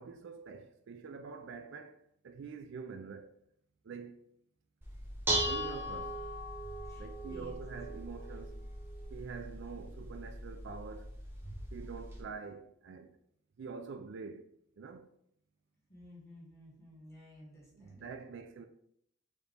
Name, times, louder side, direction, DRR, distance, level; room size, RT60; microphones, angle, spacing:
voice 1, 0.0-3.3 3.8-4.3 5.4-6.2 7.0-8.6 9.1-11.2 11.7-13.2 13.6-14.5 14.8-15.1 17.7-18.7, right 5 dB, 60° right, 0.3 m, -46 dB
Dishes pots and pans, 4.8-12.2, right 1 dB, 10° right, 0.7 m, -39 dB
voice 2, 6.8-7.6 15.9-18.1, left 1 dB, 15° left, 1.6 m, -54 dB
4.9 x 2.6 x 3.3 m
head